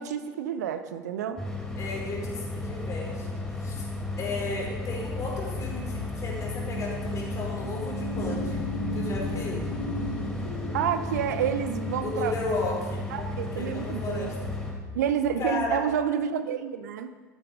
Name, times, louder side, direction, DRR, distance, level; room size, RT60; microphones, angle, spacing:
voice 1, 0.0-1.4 10.7-12.3 13.1-14.4 14.9-17.2, right 8 dB, 65° right, 10 dB, 0.7 m, -29 dB
sound 1, 1.4-14.7, left 2 dB, 5° left, 3.6 m, -34 dB
voice 2, 1.8-3.9 4.2-9.7 12.0-14.3 15.4-15.8, left 3 dB, 30° left, -2 dB, 4.4 m, -34 dB
sound 2, 2.8-15.9, left 2 dB, 70° left, 4.4 m, -38 dB
13.0 x 8.9 x 5.2 m, 1.4 s
figure-of-eight pair, 75°, 10 cm